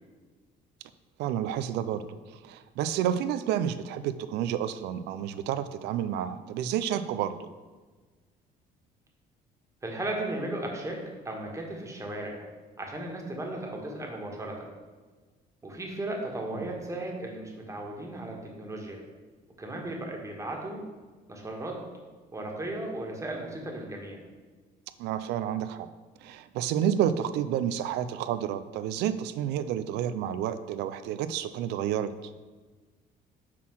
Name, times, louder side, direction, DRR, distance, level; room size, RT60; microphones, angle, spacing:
voice 1, 1.2-2.0 2.4-7.5 16.6-16.7 25.0-25.9 26.2-32.3, right 10 dB, 85° right, 12 dB, 0.4 m, -30 dB
voice 2, 9.8-11.0 11.2-12.4 12.8-14.7 15.6-19.0 19.6-20.8 21.3-21.8 22.3-24.2, right 1 dB, 15° right, 0 dB, 1.5 m, -36 dB
5.7 x 4.2 x 6.1 m, 1.4 s
cardioid pair, 110°, 17 cm